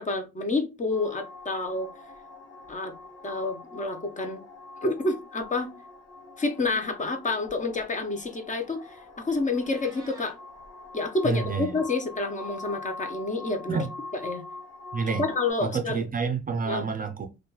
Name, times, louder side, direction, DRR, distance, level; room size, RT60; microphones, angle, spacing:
voice 1, 0.0-1.9 2.7-2.9 3.2-4.4 4.8-5.7 6.4-10.3 10.9-13.8 14.2-14.4 15.2-16.0 16.7-16.9, left 3 dB, 25° left, 0.5 m, -29 dB
sound 1, 0.9-15.5, left 3 dB, 55° left, 1.0 m, -44 dB
Meow, 9.5-10.3, right 1 dB, 10° right, 0.9 m, -50 dB
voice 2, 11.2-11.8 13.7-13.9 14.9-15.2 15.6-17.3, right 5 dB, 30° right, 0.4 m, -28 dB
2.8 x 2.3 x 2.3 m
cardioid pair, 90°, 30 cm